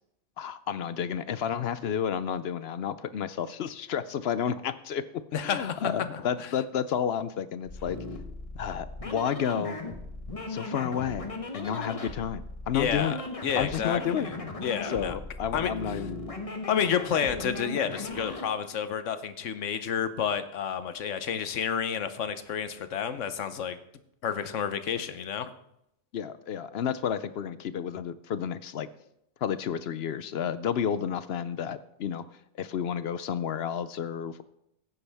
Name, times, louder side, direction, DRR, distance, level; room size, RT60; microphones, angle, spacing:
voice 1, 0.4-8.0 8.6-9.8 10.5-13.2 13.5-14.3 14.8-16.2 26.1-28.9 29.4-32.2 32.6-34.4, left 8 dB, 65° left, 14 dB, 0.8 m, -31 dB
voice 2, 5.3-6.5 12.7-13.2 13.4-14.3 14.6-15.2 15.5-15.7 16.7-23.8 24.2-25.5, left 8 dB, 90° left, 11 dB, 1.2 m, -30 dB
sound 1, 7.6-18.5, left 2 dB, 30° left, 1.3 m, -38 dB
15.5 x 9.6 x 3.5 m, 0.79 s
omnidirectional pair, 1.2 m